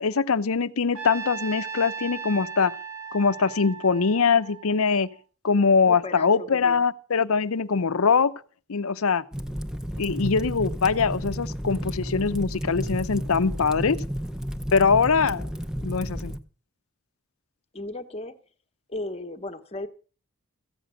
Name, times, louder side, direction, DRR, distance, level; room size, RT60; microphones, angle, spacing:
voice 1, 0.0-2.7 3.1-5.1 5.4-8.3 8.7-9.2 10.0-14.0 14.7-15.5 15.8-16.4, left 5 dB, 75° left, 0.6 m, -22 dB
Trumpet, 0.9-5.2, right 6 dB, 90° right, 1.6 m, -37 dB
voice 2, 5.8-6.8 17.7-18.3 18.9-19.9, left 2 dB, 30° left, 1.0 m, -35 dB
Fire, 9.3-16.4, equal, 5° right, 0.6 m, -32 dB
14.5 x 6.5 x 9.0 m
head